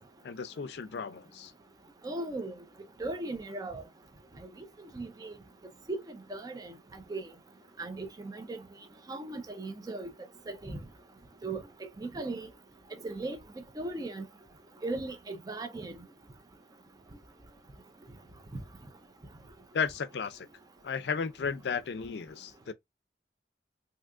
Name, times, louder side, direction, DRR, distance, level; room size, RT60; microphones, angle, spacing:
voice 1, 0.2-1.5 19.7-20.5 20.8-22.7, left 6 dB, 65° left, 0.4 m, -34 dB
voice 2, 2.0-2.5 3.0-3.8 4.9-5.3 5.9-6.7 7.1-7.3 7.8-8.6 9.1-10.1 10.5-10.8 11.4-11.6 12.0-12.5 13.0-13.4 13.8-14.2 14.8-16.0, right 2 dB, 20° right, 0.4 m, -37 dB
2.7 x 2.4 x 3.5 m
head